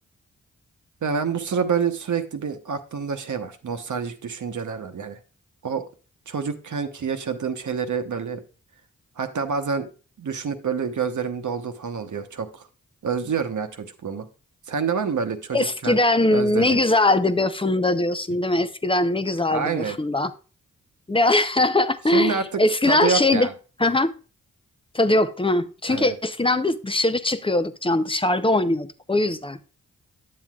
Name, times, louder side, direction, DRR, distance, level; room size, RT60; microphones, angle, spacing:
voice 1, 1.0-5.2 5.6-5.8 6.3-8.4 9.2-9.9 10.2-12.7 13.0-14.3 14.7-16.0 16.3-16.8 19.5-20.0 22.1-22.6 22.9-23.5 25.9-26.1, right 6 dB, 60° right, 0.9 m, -27 dB
voice 2, 15.5-20.3 21.1-23.5 23.8-24.1 24.9-29.6, left 2 dB, 15° left, 0.6 m, -21 dB
9.4 x 7.6 x 2.3 m
cardioid pair, 40°, 33 cm